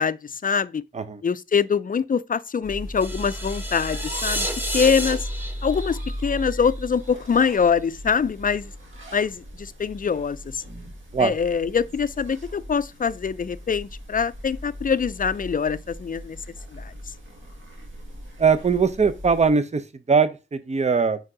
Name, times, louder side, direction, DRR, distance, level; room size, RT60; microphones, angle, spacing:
voice 1, 0.0-0.8 1.2-4.5 4.7-5.3 5.6-8.7 9.1-10.6 11.2-16.4 16.7-16.9, left 6 dB, 45° left, 0.4 m, -24 dB
sound 1, 2.6-19.5, equal, 80° right, 1.8 m, -37 dB
sound 2, 3.0-7.1, equal, 10° right, 1.6 m, -31 dB
voice 2, 18.4-21.2, right 5 dB, 35° right, 0.7 m, -21 dB
4.7 x 4.4 x 4.9 m
cardioid pair, 55°, 20 cm